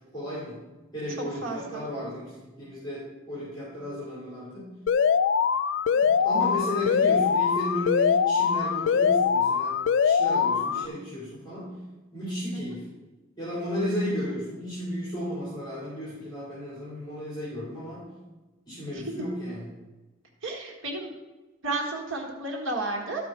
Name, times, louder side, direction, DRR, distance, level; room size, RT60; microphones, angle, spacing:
voice 1, 0.1-0.6 0.9-4.7 5.9-11.7 12.1-12.8 13.4-18.1 18.7-19.7, equal, 20° left, -9 dB, 3.3 m, -34 dB
voice 2, 1.4-1.8 10.6-10.9 20.4-21.1 21.6-23.3, right 2 dB, 75° right, 0 dB, 1.7 m, -32 dB
Alarm, 4.9-10.9, left 6 dB, 60° left, 0.3 m, -23 dB
13.5 x 5.4 x 4.4 m, 1.2 s
head